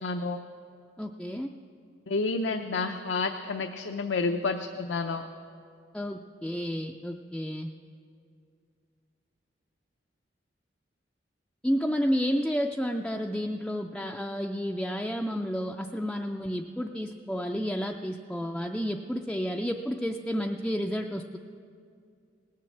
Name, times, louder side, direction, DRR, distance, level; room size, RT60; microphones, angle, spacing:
voice 1, 0.0-0.4 2.1-5.2, left 3 dB, 85° left, 6 dB, 0.6 m, -30 dB
voice 2, 1.0-1.5 5.9-7.7 11.6-21.4, equal, 5° left, 2 dB, 0.3 m, -31 dB
18.5 x 7.5 x 7.2 m, 2.4 s
head